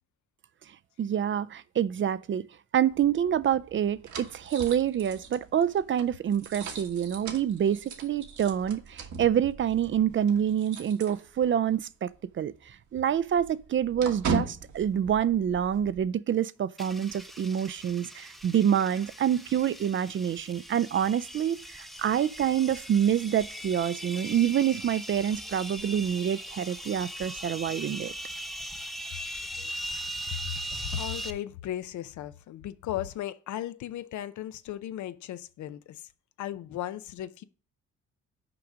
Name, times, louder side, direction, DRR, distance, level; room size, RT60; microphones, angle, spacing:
voice 1, 1.0-2.5 2.7-28.1, right 9 dB, 40° right, 0.4 m, -27 dB
sound 1, 2.9-11.8 12.1-12.2 12.5-16.0, right 5 dB, 70° right, 1.5 m, -39 dB
sound 2, 16.8-31.3, right 1 dB, ahead, 0.6 m, -40 dB
voice 2, 30.9-36.1 36.4-37.4, left 12 dB, 75° left, 0.6 m, -36 dB
6.0 x 4.9 x 6.3 m
cardioid pair, 90°, 30 cm